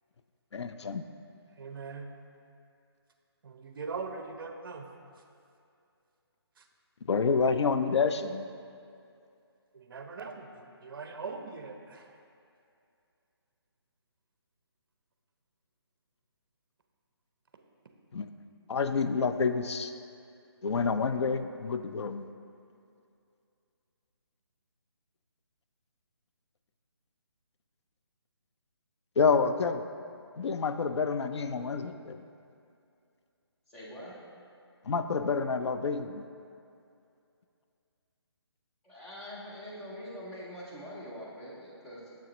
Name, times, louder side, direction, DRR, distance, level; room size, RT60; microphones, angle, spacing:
voice 1, 0.5-1.0 7.0-8.5 18.1-18.3 18.7-19.9 20.6-22.3 29.2-29.8 30.4-32.2 34.9-36.3, left 5 dB, 85° left, 9 dB, 0.4 m, -28 dB
voice 2, 1.6-2.1 3.4-4.8 9.9-12.0, right 4 dB, 55° right, 5 dB, 0.6 m, -40 dB
voice 3, 33.7-34.2 38.8-42.2, equal, 5° left, -7 dB, 0.5 m, -44 dB
6.7 x 6.0 x 3.0 m, 2.5 s
hypercardioid pair, 160°, 14 cm